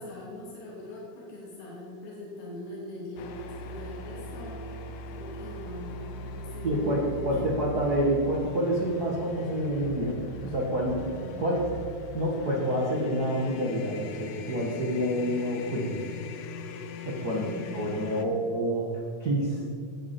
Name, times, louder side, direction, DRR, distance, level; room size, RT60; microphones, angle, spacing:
voice 1, 0.0-7.4 17.3-17.8 18.0-18.4, left 2 dB, 90° left, -6 dB, 5.0 m, -42 dB
sound 1, 3.2-18.2, left 2 dB, 70° left, 2.3 m, -40 dB
voice 2, 6.6-10.2 10.4-11.0 11.4-11.7 12.1-15.9 17.0-17.4 17.7-18.9 19.2-19.6, equal, 75° right, -4 dB, 0.9 m, -28 dB
18.0 x 10.5 x 4.4 m, 2.5 s
omnidirectional pair, 4.7 m